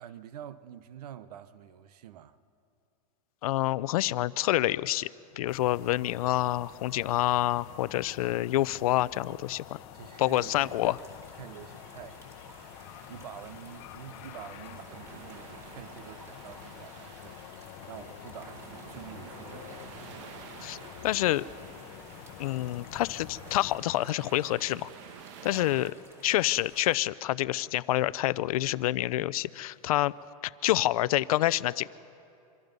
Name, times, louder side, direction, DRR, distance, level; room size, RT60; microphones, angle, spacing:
voice 1, 0.0-2.4 6.9-7.1 9.9-11.0 11.4-20.2 25.4-25.7, right 10 dB, 80° right, 1.1 m, -47 dB
voice 2, 3.4-5.1 5.4-9.6 10.2-11.0 20.6-21.4 22.4-24.9 25.4-25.9 26.2-30.1 30.4-31.9, left 15 dB, 65° left, 0.6 m, -27 dB
sound 1, 5.5-23.8, left 12 dB, 40° left, 0.9 m, -48 dB
sound 2, 10.3-27.0, right 1 dB, 15° right, 2.8 m, -55 dB
sound 3, 11.1-25.9, right 8 dB, 50° right, 1.3 m, -51 dB
25.5 x 25.0 x 5.4 m
supercardioid pair, 160°, 20 cm